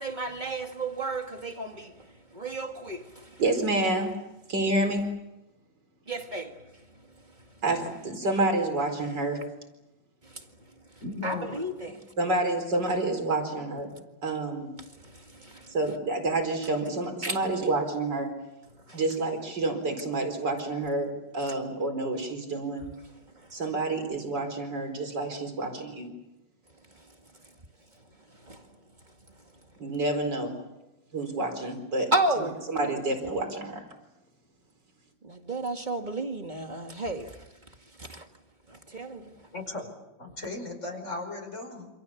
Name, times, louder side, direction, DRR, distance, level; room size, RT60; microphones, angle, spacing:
voice 1, 0.0-3.4 6.1-6.6 10.2-10.4 11.2-12.0 15.0-15.7 17.2-17.4 18.9-19.0 23.4-23.5 28.4-28.7 32.1-32.5 35.2-37.4 38.0-38.3 38.7-39.3, right 2 dB, 25° right, 2.0 m, -33 dB
voice 2, 3.4-4.2 4.5-5.1 7.6-9.4 12.2-14.7 15.7-18.3 18.9-22.9 23.5-26.1 29.8-30.6 31.1-32.1 32.7-33.8, right 2 dB, 70° right, 5.1 m, -28 dB
voice 3, 11.0-11.6 32.3-32.4 39.5-39.9 40.2-41.9, left 2 dB, 40° left, 5.4 m, -36 dB
28.0 x 27.0 x 7.2 m
omnidirectional pair, 2.0 m